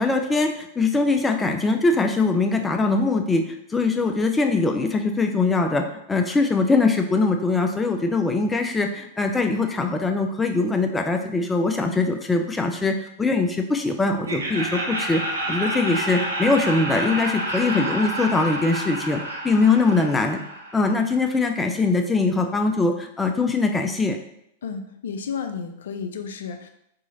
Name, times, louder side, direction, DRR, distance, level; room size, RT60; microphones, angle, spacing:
voice 1, 0.0-15.2 15.5-20.4 20.7-24.2, left 3 dB, 15° left, 4 dB, 0.4 m, -22 dB
Laughter, 14.2-21.2, right 1 dB, 85° right, 0.7 m, -29 dB
voice 2, 24.6-26.7, left 6 dB, 70° left, 7 dB, 0.4 m, -32 dB
3.6 x 3.0 x 2.7 m, 0.77 s
hypercardioid pair, 100°, 0 cm